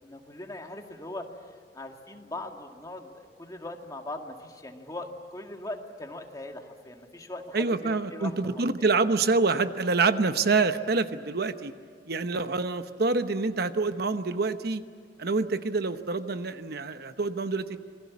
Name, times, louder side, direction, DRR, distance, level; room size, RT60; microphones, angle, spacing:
voice 1, 0.0-1.3 1.7-8.9, left 1 dB, 20° left, 3 dB, 2.2 m, -40 dB
voice 2, 7.5-11.7 12.1-14.8 15.2-17.7, right 3 dB, 60° right, 10 dB, 1.0 m, -26 dB
27.5 x 21.5 x 8.5 m, 2.1 s
head